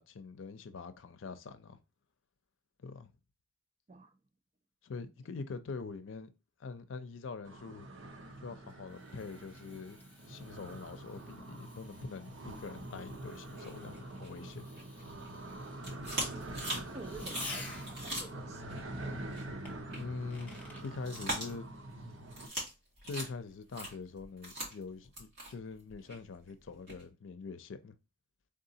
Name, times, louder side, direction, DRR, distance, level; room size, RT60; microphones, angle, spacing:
voice 1, 0.0-1.8 2.8-3.1 4.8-6.3 6.6-7.9 8.4-10.0 10.3-14.6 19.9-20.6 20.8-21.7 23.0-28.0, left 4 dB, 80° left, 0.5 m, -44 dB
sound 1, 7.4-22.5, right 1 dB, 80° right, 0.7 m, -45 dB
Fireworks, 8.3-18.2 19.6-20.9, left 2 dB, 10° left, 0.6 m, -52 dB
sound 2, 13.5-15.3 15.6-18.8 19.3-19.4 19.9-20.0 20.3-21.9 22.3-22.7 23.0-27.0, right 1 dB, 55° right, 2.1 m, -41 dB
voice 2, 15.8-16.3 16.9-18.7, right 3 dB, 35° right, 0.5 m, -49 dB
3.8 x 3.7 x 2.7 m
head